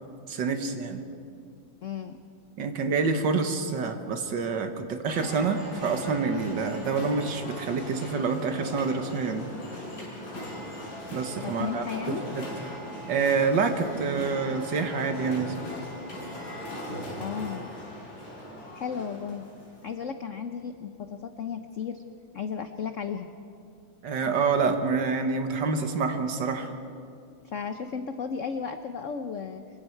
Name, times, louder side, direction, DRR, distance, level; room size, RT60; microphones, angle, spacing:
voice 1, 0.3-1.0 2.6-9.5 11.1-11.8 12.3-12.7 13.1-15.7 24.0-26.7, right 4 dB, 60° right, 7 dB, 1.8 m, -27 dB
voice 2, 1.8-2.2 11.4-12.3 17.2-17.7 18.7-19.5 19.8-22.0 22.3-23.3 27.4-29.6, left 6 dB, 75° left, 8 dB, 0.7 m, -34 dB
sound 1, 5.1-19.9, left 1 dB, 50° left, 6.1 m, -39 dB
25.0 x 23.5 x 4.6 m, 2.4 s
omnidirectional pair, 2.3 m